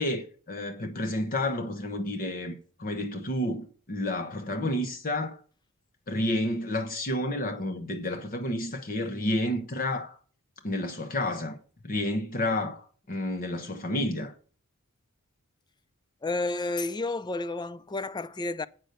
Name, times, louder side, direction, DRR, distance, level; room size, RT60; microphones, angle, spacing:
voice 1, 0.0-5.4 6.1-10.2 10.6-11.6 11.8-14.3, left 1 dB, 40° left, 0.9 m, -30 dB
voice 2, 16.2-18.7, left 2 dB, 20° left, 0.4 m, -31 dB
9.0 x 5.9 x 6.6 m
head